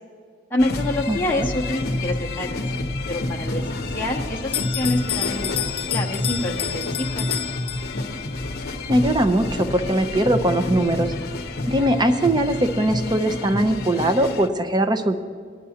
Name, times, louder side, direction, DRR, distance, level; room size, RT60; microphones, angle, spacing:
voice 1, 0.5-2.6 3.1-7.2, left 1 dB, 10° left, -4 dB, 0.8 m, -27 dB
sound 1, 0.6-14.5, left 2 dB, 55° left, 0.8 m, -29 dB
voice 2, 1.1-1.5 8.9-11.1 11.7-15.2, right 1 dB, 25° right, 8 dB, 0.6 m, -21 dB
Bell, 4.5-8.3, left 11 dB, 30° left, 0.3 m, -29 dB
18.5 x 10.5 x 2.8 m, 2.1 s
head